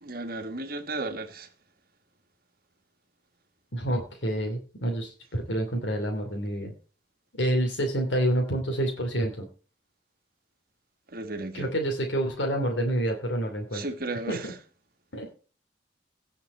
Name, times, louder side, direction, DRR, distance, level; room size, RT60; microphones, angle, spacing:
voice 1, 0.0-1.5 11.1-11.7 13.7-14.5, right 2 dB, 55° right, 1.7 m, -34 dB
voice 2, 3.7-6.7 7.4-9.4 11.5-13.8 14.3-14.5 15.1-15.3, right 1 dB, 80° left, 2.8 m, -28 dB
17.5 x 5.9 x 4.3 m
head